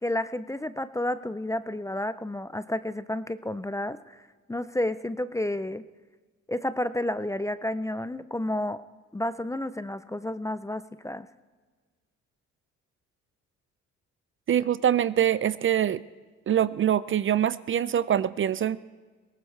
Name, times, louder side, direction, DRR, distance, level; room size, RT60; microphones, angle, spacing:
voice 1, 0.0-5.9 6.5-8.8 9.1-11.3, left 1 dB, 10° left, 14 dB, 0.5 m, -31 dB
voice 2, 14.5-16.0 16.5-18.8, right 10 dB, 40° right, 16 dB, 0.5 m, -24 dB
22.0 x 18.5 x 3.2 m, 1.4 s
cardioid pair, 90°, 30 cm